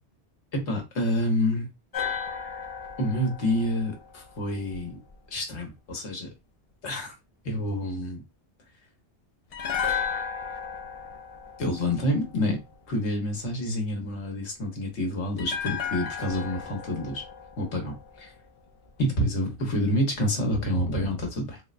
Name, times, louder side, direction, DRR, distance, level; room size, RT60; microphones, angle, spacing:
voice 1, 0.5-1.7 3.0-5.0 5.3-6.3 6.8-7.1 7.4-8.2 11.6-12.6 12.9-17.2 17.6-18.3 19.0-21.6, left 1 dB, 75° left, 1.3 m, -28 dB
sound 1, 1.9-5.1 9.5-12.7 15.4-18.6 18.9-19.0, left 7 dB, 60° left, 0.4 m, -34 dB
3.7 x 2.1 x 2.4 m
omnidirectional pair, 1.2 m